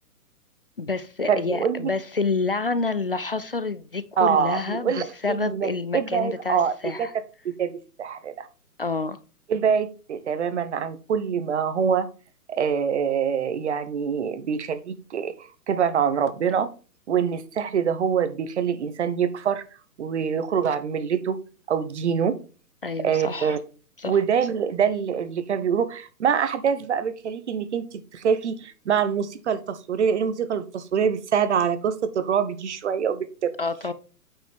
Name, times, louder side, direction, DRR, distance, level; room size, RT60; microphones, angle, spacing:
voice 1, 0.8-7.1 8.8-9.2 22.8-23.6 24.0-24.2 33.6-33.9, left 4 dB, 40° left, 0.4 m, -28 dB
voice 2, 1.3-1.9 4.2-7.1 7.6-8.5 9.5-12.1 12.5-16.7 17.1-19.6 20.0-21.4 21.7-22.4 23.0-23.6 24.0-33.5, right 7 dB, 45° right, 1.1 m, -25 dB
9.0 x 5.1 x 3.5 m
hypercardioid pair, 160°, 47 cm